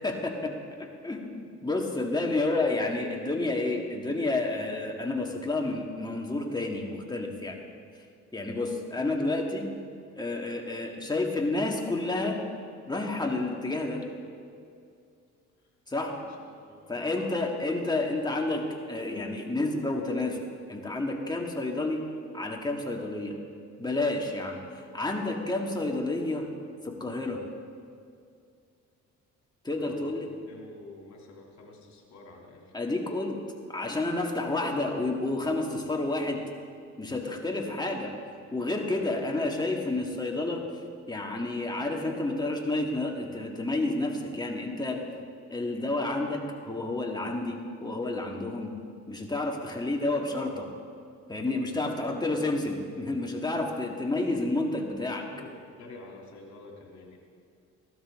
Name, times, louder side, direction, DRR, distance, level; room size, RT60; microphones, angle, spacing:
voice 1, 0.0-7.6 8.3-9.8 10.2-12.4 12.9-14.1 15.9-16.2 16.9-20.4 20.7-22.1 22.3-23.4 23.8-24.6 24.9-26.5 26.8-27.4 29.6-30.2 32.7-33.4 33.7-36.4 37.0-38.1 38.5-40.7 41.1-45.1 45.5-48.7 49.1-50.7 51.3-55.3, left 2 dB, 15° left, 1 dB, 1.8 m, -30 dB
voice 2, 16.0-17.3 24.1-24.3 29.7-30.2 30.4-32.7 38.8-39.2 55.3-55.5 55.8-57.2, left 3 dB, 65° left, -1 dB, 2.9 m, -49 dB
15.0 x 12.5 x 3.7 m, 2.3 s
cardioid pair, 90°, 30 cm